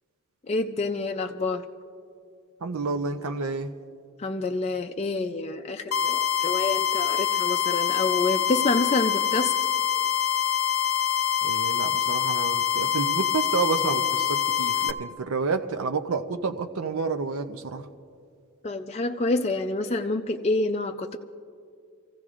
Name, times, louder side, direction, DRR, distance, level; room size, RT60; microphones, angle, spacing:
voice 1, 0.5-1.6 4.2-9.5 18.6-21.2, left 3 dB, 30° left, 4 dB, 0.4 m, -27 dB
voice 2, 2.6-3.7 11.4-17.9, right 4 dB, 80° right, 7 dB, 0.6 m, -29 dB
sound 1, 5.9-14.9, left 9 dB, 80° left, 0.5 m, -25 dB
29.5 x 15.5 x 2.5 m, 2.3 s
head